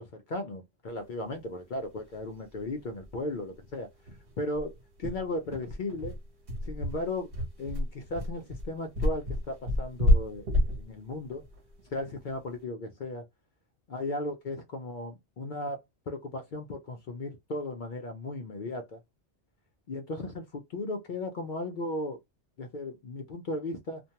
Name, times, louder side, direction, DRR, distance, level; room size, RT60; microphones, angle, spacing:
voice 1, 0.0-3.9 4.4-4.7 5.0-6.2 6.6-7.3 7.6-11.4 11.9-13.2 13.9-19.0 19.9-22.2 22.6-24.0, left 2 dB, 55° left, 0.6 m, -36 dB
sound 1, 2.1-2.2 2.5-2.6 3.0-3.1 3.5-3.6 4.1-12.5, left 1 dB, 55° right, 1.1 m, -29 dB
2.5 x 2.2 x 2.8 m
omnidirectional pair, 1.2 m